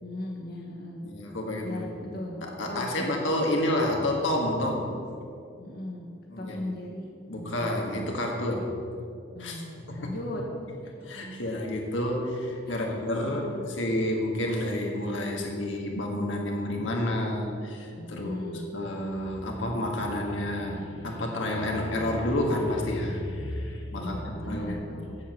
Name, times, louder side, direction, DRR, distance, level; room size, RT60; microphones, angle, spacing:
voice 1, 0.0-1.0 1.6-3.1 5.6-6.1 6.4-7.7 9.3-10.4 10.8-11.1 12.6-12.9 13.2-13.7 18.0-18.7 23.9-25.2, left 1 dB, 55° left, -2 dB, 1.4 m, -38 dB
voice 2, 1.0-4.9 6.3-6.6 7.3-8.8 9.4-9.6 9.9-10.0 11.0-24.2 24.5-24.8, left 1 dB, 85° left, 0 dB, 1.7 m, -29 dB
8.4 x 7.7 x 7.5 m, 2.4 s
head